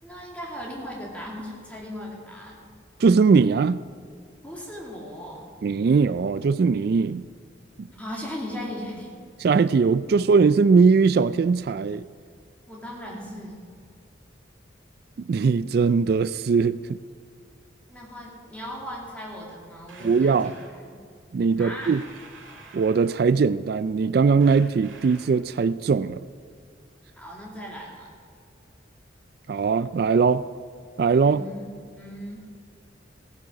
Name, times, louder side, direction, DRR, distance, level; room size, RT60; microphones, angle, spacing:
voice 1, 0.0-2.6 4.4-5.5 7.9-9.1 12.7-13.6 17.9-21.0 21.6-21.9 27.1-28.1 31.3-32.5, equal, 5° left, -4 dB, 2.4 m, -38 dB
voice 2, 3.0-3.8 5.6-7.3 7.8-7.9 9.4-12.0 15.3-17.0 20.0-20.5 21.3-22.0 22.7-26.3 29.5-30.4 31.0-31.4, right 5 dB, 55° right, 16 dB, 0.3 m, -20 dB
sound 1, 19.9-20.8 21.8-23.4 24.4-25.5, right 3 dB, 85° right, 2.4 m, -48 dB
16.5 x 10.5 x 6.1 m, 2.2 s
head